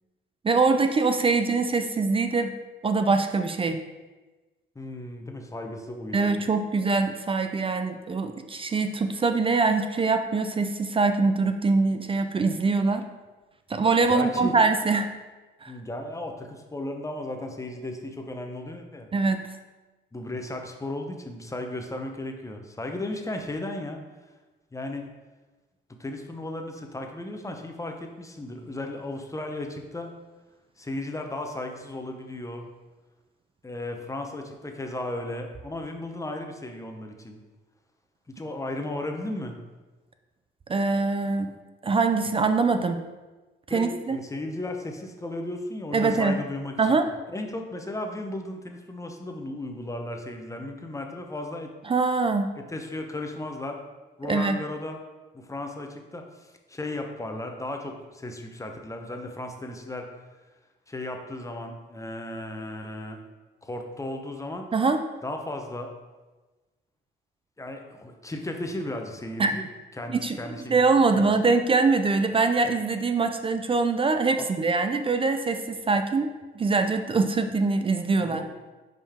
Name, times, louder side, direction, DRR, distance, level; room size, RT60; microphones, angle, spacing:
voice 1, 0.4-2.6 2.8-3.8 6.1-13.1 13.7-15.1 15.6-15.7 19.1-19.6 40.7-41.6 41.8-43.0 43.7-44.2 45.9-46.4 46.8-47.1 51.9-52.6 54.3-54.6 64.7-65.0 69.4-69.5 70.1-70.4 70.7-76.3 76.6-78.4, right 4 dB, 25° right, 7 dB, 0.4 m, -23 dB
voice 2, 4.7-6.3 14.1-14.5 15.7-19.1 20.1-24.0 24.7-25.2 25.9-30.1 30.8-32.7 33.6-37.4 38.3-39.6 43.7-47.0 47.3-51.7 52.5-53.8 54.2-55.0 55.3-60.1 60.9-63.2 63.6-64.7 65.2-65.9 67.6-69.7 70.0-70.8 71.1-71.5 74.4-74.5 78.2-78.5, left 1 dB, 15° left, 4 dB, 0.7 m, -35 dB
5.5 x 5.1 x 3.6 m, 1.2 s
cardioid pair, 90°, 20 cm